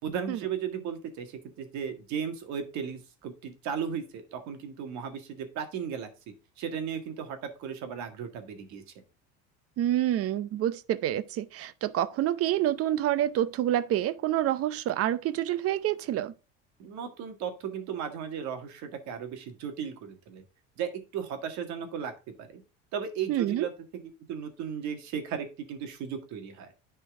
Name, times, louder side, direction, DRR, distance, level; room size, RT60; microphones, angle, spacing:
voice 1, 0.0-8.8 16.8-20.4 20.8-22.1 22.4-22.6 22.9-24.0 24.3-26.7, right 7 dB, 65° right, 1.9 m, -36 dB
voice 2, 9.8-16.3 23.3-23.7, right 12 dB, 50° right, 0.7 m, -27 dB
10.0 x 4.5 x 3.7 m
cardioid pair, 120°, 31 cm